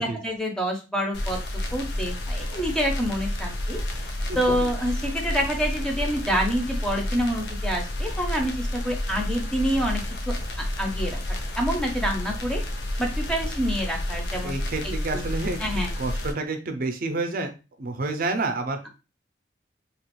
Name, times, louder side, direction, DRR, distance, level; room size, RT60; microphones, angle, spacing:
voice 1, 0.0-1.4 1.7-3.8 4.0-11.2 11.6-12.6 13.0-14.5 15.1-15.2 15.6-15.9, equal, 5° left, 1 dB, 0.6 m, -27 dB
sound 1, 1.1-16.3, left 1 dB, 65° left, 0.5 m, -30 dB
voice 2, 14.4-17.5 17.8-18.9, right 3 dB, 55° right, 6 dB, 0.5 m, -29 dB
2.9 x 2.3 x 3.0 m, 0.30 s
head